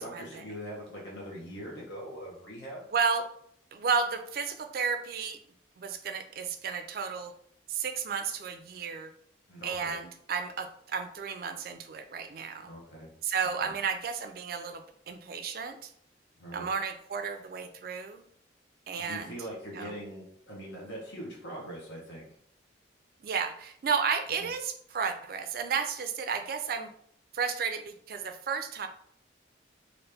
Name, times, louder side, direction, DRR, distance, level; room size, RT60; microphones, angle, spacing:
voice 1, 0.0-2.9 9.5-9.9 12.6-13.1 13.6-13.7 16.4-16.7 19.0-22.3 24.3-24.5, equal, 85° left, -4 dB, 1.0 m, -42 dB
voice 2, 2.9-3.2 3.7-5.4 5.8-7.3 7.7-9.1 9.6-12.7 13.2-15.9 16.5-18.2 18.9-19.4 19.7-19.9 23.2-26.9 27.3-28.9, right 6 dB, 50° right, 7 dB, 0.3 m, -32 dB
2.9 x 2.6 x 3.3 m, 0.66 s
head